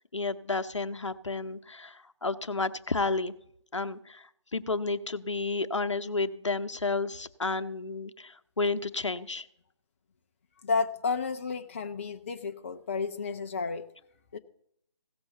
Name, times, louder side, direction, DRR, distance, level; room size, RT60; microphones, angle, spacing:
voice 1, 0.1-3.3 3.7-9.5, left 3 dB, 75° left, 10 dB, 0.8 m, -31 dB
voice 2, 10.6-13.9 14.3-14.4, left 4 dB, 25° left, 7 dB, 0.4 m, -31 dB
16.0 x 6.1 x 6.9 m, 0.71 s
figure-of-eight pair, 145°, 16 cm